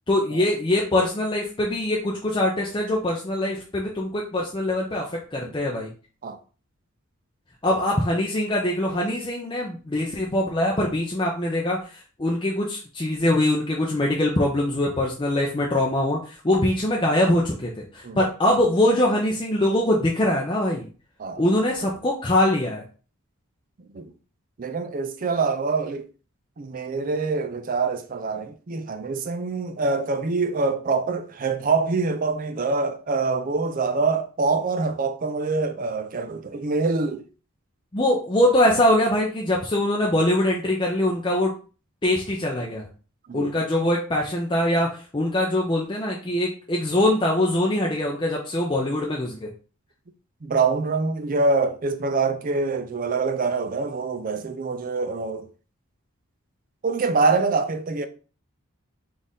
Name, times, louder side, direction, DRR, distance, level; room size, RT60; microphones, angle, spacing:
voice 1, 0.1-5.9 7.6-20.9 21.4-22.8 37.9-41.6 42.0-42.9 43.3-49.5, left 1 dB, 20° left, 0.5 m, -23 dB
voice 2, 24.6-26.1 26.6-37.2 43.3-43.5 50.4-55.5 56.8-58.1, right 4 dB, 40° right, 0.4 m, -25 dB
4.1 x 2.5 x 3.6 m
head